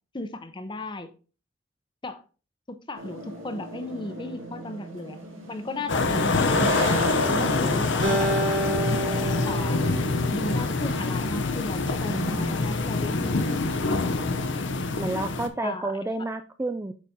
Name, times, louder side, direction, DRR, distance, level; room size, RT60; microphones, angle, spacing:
voice 1, 0.1-1.1 2.0-2.2 2.9-5.2 5.5-8.4 8.7-9.0 9.5-9.8 10.3-14.4 15.6-15.9, left 2 dB, 25° left, 0.7 m, -35 dB
sound 1, 3.0-8.0, right 1 dB, 80° right, 2.0 m, -34 dB
sound 2, 5.9-15.5, left 3 dB, 65° left, 0.7 m, -25 dB
Acoustic guitar, 8.0-11.4, right 1 dB, 60° right, 2.0 m, -30 dB
voice 2, 12.0-12.7 15.0-16.9, right 2 dB, 15° right, 0.3 m, -31 dB
8.4 x 4.1 x 3.6 m
head